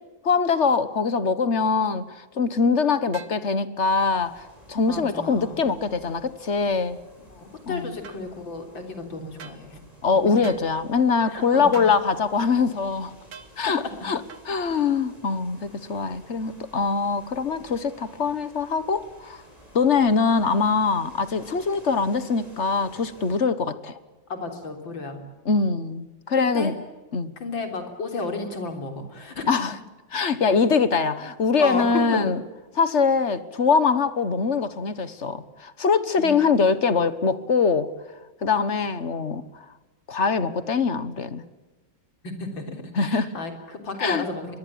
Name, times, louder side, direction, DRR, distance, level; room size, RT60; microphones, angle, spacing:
voice 1, 0.2-7.0 7.7-7.9 10.0-13.1 13.6-19.4 19.7-24.0 25.4-26.7 27.1-27.3 29.5-29.8 30.1-32.4 32.8-37.9 38.4-39.4 40.1-41.4 42.9-43.4 44.0-44.3, left 5 dB, 40° left, 14 dB, 1.4 m, -23 dB
sound 1, 3.1-3.4 8.0-8.2 9.4-9.6 10.4-10.7 11.7-12.0 13.3-13.5 14.3-14.5, right 6 dB, 90° right, 2.4 m, -42 dB
sound 2, 3.8-23.4, equal, 20° left, 6.8 m, -51 dB
voice 2, 4.9-5.6 7.3-9.8 11.3-11.8 13.6-14.1 24.3-25.2 26.4-26.7 27.4-29.5 31.6-32.2 36.2-36.3 42.2-44.6, left 3 dB, 85° left, 5 dB, 4.4 m, -33 dB
24.0 x 22.0 x 8.7 m, 1.2 s
omnidirectional pair, 2.0 m